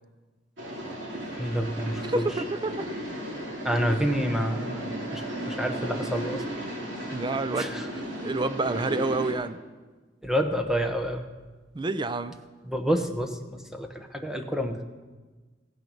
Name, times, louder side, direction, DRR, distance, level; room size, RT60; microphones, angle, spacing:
sound 1, 0.6-9.3, right 1 dB, 85° right, 2.9 m, -35 dB
voice 1, 1.4-2.2 3.6-6.4 7.6-7.8 10.2-11.2 12.7-14.8, equal, 5° right, 5 dB, 0.9 m, -28 dB
voice 2, 2.0-2.9 7.1-7.9 8.2-9.6 11.7-12.3, right 2 dB, 25° right, 12 dB, 0.5 m, -28 dB
15.5 x 9.0 x 5.5 m, 1.3 s
head